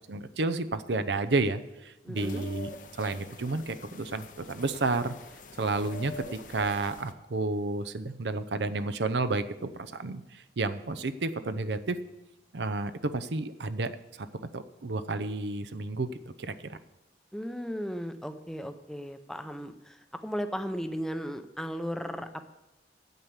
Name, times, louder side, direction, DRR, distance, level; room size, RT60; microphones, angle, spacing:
voice 1, 0.1-2.7 3.0-5.1 5.6-12.0 12.5-14.3 14.5-16.1 16.4-16.8, right 3 dB, 75° right, 10 dB, 0.7 m, -31 dB
voice 2, 2.0-2.5 17.3-22.4, equal, 5° left, 8 dB, 0.6 m, -36 dB
sound 1, 2.1-7.1, left 2 dB, 45° left, 0.7 m, -45 dB
9.3 x 8.1 x 7.1 m, 0.96 s
head